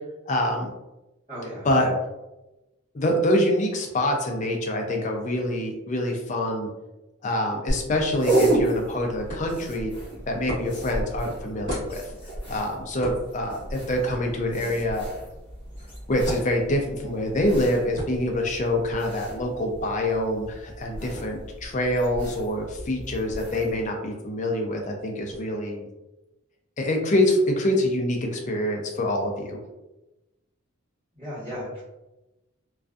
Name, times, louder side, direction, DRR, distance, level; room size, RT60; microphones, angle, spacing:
voice 1, 0.3-0.7 1.6-1.9 2.9-6.7 7.2-9.9 10.3-12.1 12.5-15.1 16.1-25.9 26.8-29.6, left 1 dB, 35° left, 2 dB, 0.4 m, -25 dB
voice 2, 1.3-1.9 31.2-31.8, equal, 25° right, -14 dB, 1.2 m, -35 dB
sound 1, 7.7-25.4, equal, 50° right, 1.0 m, -40 dB
sound 2, 7.8-23.9, right 2 dB, 10° left, 0.9 m, -33 dB
2.5 x 2.3 x 2.3 m, 0.99 s
head